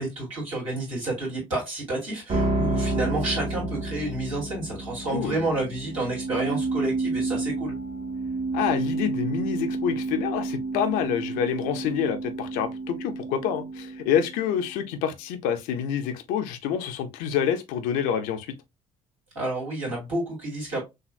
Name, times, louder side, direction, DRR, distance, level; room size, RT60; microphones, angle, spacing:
voice 1, 0.0-7.7 19.3-20.8, right 2 dB, 80° right, 2.8 m, -30 dB
sound 1, 2.3-14.6, right 3 dB, 30° right, 1.0 m, -30 dB
voice 2, 5.0-5.4 8.5-18.5, left 8 dB, 60° left, 0.8 m, -27 dB
6.4 x 2.5 x 2.5 m
figure-of-eight pair, 50°, 17 cm